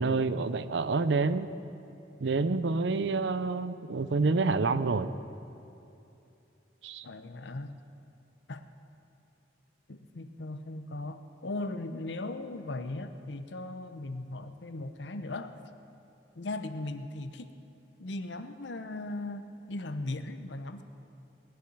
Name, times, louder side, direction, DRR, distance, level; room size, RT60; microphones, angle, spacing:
voice 1, 0.0-1.5 2.2-5.1 6.8-7.0, right 3 dB, 75° right, 13 dB, 0.6 m, -28 dB
voice 2, 7.0-7.8 8.5-8.6 9.9-15.6 16.4-17.5 18.0-20.8, left 2 dB, 75° left, 9 dB, 0.8 m, -38 dB
19.0 x 7.0 x 9.3 m, 2.7 s
head